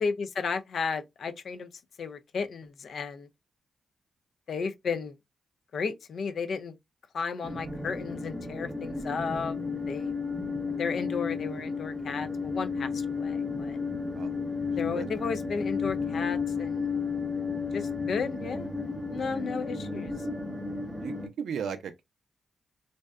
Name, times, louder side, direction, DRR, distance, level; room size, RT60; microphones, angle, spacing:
voice 1, 0.0-1.7 2.0-3.3 4.5-5.1 5.7-6.8 7.1-9.6 9.9-10.1 10.8-13.8 14.8-16.9 17.7-18.7 19.1-20.1, left 5 dB, 70° left, 0.3 m, -33 dB
sound 1, 7.4-21.3, left 4 dB, 10° right, 0.6 m, -33 dB
voice 2, 21.0-22.0, right 7 dB, 80° right, 0.3 m, -36 dB
2.6 x 2.1 x 2.3 m
supercardioid pair, 55°, 0 cm